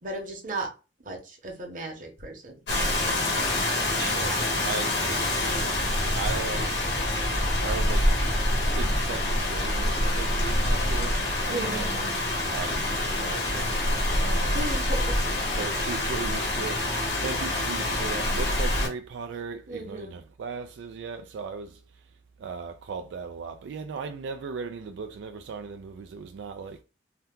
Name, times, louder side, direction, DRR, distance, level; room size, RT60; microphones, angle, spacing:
voice 1, 0.0-0.7 1.0-2.5 11.5-11.9 14.5-15.1 19.7-20.2, right 2 dB, 50° right, 0.9 m, -35 dB
Rain, 2.7-18.9, left 1 dB, 75° left, 1.2 m, -26 dB
voice 2, 4.0-6.8 7.6-8.2 8.7-11.2 11.5-12.2 12.5-14.7 15.5-22.0 22.4-26.8, right 5 dB, 85° right, 0.3 m, -37 dB
2.8 x 2.2 x 3.5 m
head